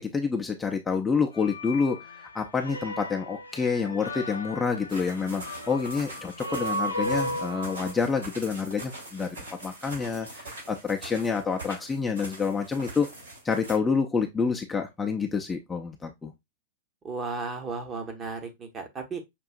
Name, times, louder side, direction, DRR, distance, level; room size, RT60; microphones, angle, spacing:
voice 1, 0.0-9.4 9.6-10.3 10.7-13.1 13.4-16.3, left 5 dB, 15° left, 0.6 m, -28 dB
sound 1, 1.4-7.9, left 1 dB, 90° left, 0.6 m, -35 dB
sound 2, 4.9-13.8, right 2 dB, 75° right, 3.0 m, -43 dB
voice 2, 17.0-19.2, right 4 dB, 25° right, 1.0 m, -34 dB
6.0 x 2.7 x 2.5 m
figure-of-eight pair, 95°, 0 cm